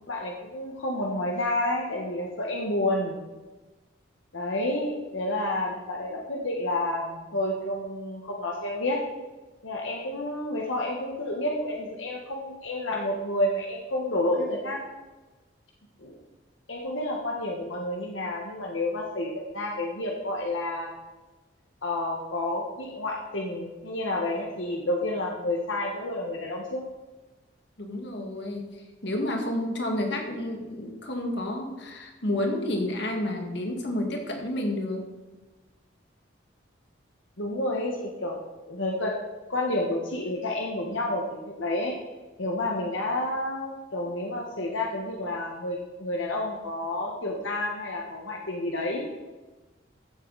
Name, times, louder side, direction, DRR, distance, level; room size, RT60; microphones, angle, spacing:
voice 1, 0.1-3.2 4.3-9.0 9.6-14.8 16.0-16.2 16.7-20.9 21.8-26.8 37.4-38.4 38.7-39.1 39.5-41.9 42.4-49.0, left 1 dB, 80° left, -1 dB, 1.5 m, -30 dB
voice 2, 27.8-35.1, left 1 dB, 60° left, 2 dB, 2.0 m, -30 dB
15.0 x 8.0 x 4.1 m, 1.2 s
head